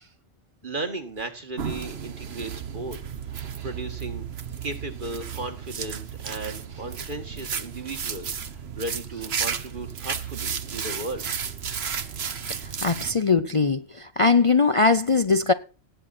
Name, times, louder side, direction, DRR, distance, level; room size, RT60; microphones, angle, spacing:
voice 1, 0.6-3.0 3.6-4.3 4.6-8.3 8.8-11.3, right 2 dB, 45° right, 2.0 m, -35 dB
sound 1, 1.6-13.1, right 7 dB, 65° right, 1.3 m, -33 dB
voice 2, 12.6-15.5, left 4 dB, 35° left, 0.6 m, -21 dB
17.5 x 9.1 x 4.3 m
omnidirectional pair, 1.2 m